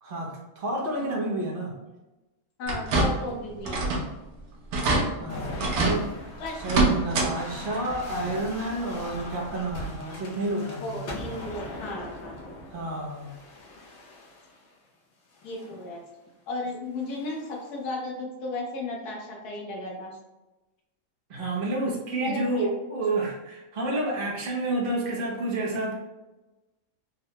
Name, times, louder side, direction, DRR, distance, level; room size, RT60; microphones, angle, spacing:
voice 1, 0.0-1.7 5.2-6.3 6.6-11.0 12.7-13.4 21.3-25.9, right 2 dB, 55° right, -2 dB, 0.6 m, -30 dB
voice 2, 2.6-3.8 6.4-6.5 10.8-12.3 15.4-16.0 16.5-20.2 22.1-22.7, left 2 dB, 90° left, -1 dB, 1.2 m, -34 dB
sound 1, 2.7-3.3 3.7-4.1 4.4-4.5 4.7-5.0 5.6-6.0 6.6-7.3 7.7-7.8 9.2-9.3 9.8-9.9, right 2 dB, 75° right, 1.2 m, -24 dB
sound 2, 5.3-14.7 15.4-15.9 17.0-17.7, left 1 dB, 60° left, 0.8 m, -40 dB
3.7 x 2.1 x 2.7 m, 1.1 s
omnidirectional pair, 1.6 m